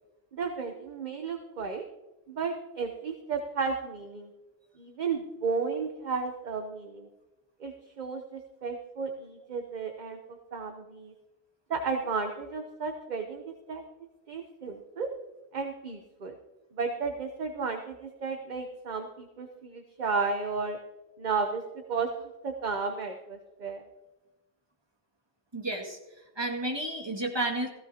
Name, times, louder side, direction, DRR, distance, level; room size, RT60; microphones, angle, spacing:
voice 1, 0.3-1.9 2.3-4.3 4.8-7.1 7.6-11.1 11.7-13.8 14.3-15.1 15.5-16.4 16.7-20.8 21.2-23.8, right 5 dB, 40° right, 5 dB, 0.9 m, -33 dB
voice 2, 25.5-26.0 26.4-27.7, right 2 dB, 20° right, -1 dB, 2.1 m, -31 dB
16.5 x 15.5 x 2.9 m, 1.1 s
omnidirectional pair, 1.3 m